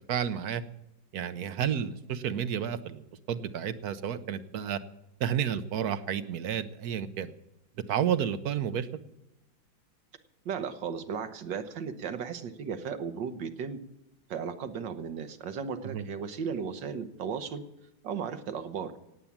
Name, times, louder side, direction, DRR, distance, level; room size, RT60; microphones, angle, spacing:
voice 1, 0.1-0.6 1.1-4.8 5.2-7.3 7.9-8.9 15.8-16.0, right 9 dB, 60° right, 12 dB, 1.2 m, -31 dB
voice 2, 10.5-13.8 14.3-17.6 18.0-18.9, right 6 dB, 80° right, 9 dB, 1.8 m, -35 dB
18.0 x 8.4 x 7.3 m, 0.90 s
omnidirectional pair, 2.0 m